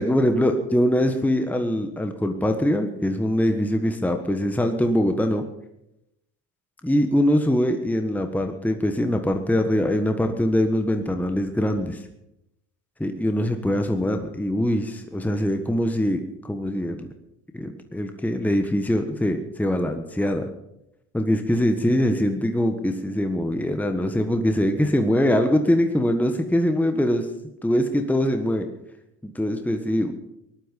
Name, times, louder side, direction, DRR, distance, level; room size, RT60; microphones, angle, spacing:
voice 1, 0.0-5.4 6.8-12.0 13.0-17.1 17.5-20.4 21.1-27.3 27.6-28.6 29.2-30.1, equal, 5° left, 6 dB, 1.5 m, -23 dB
18.5 x 11.5 x 5.3 m, 0.83 s
hypercardioid pair, 70°, 45 cm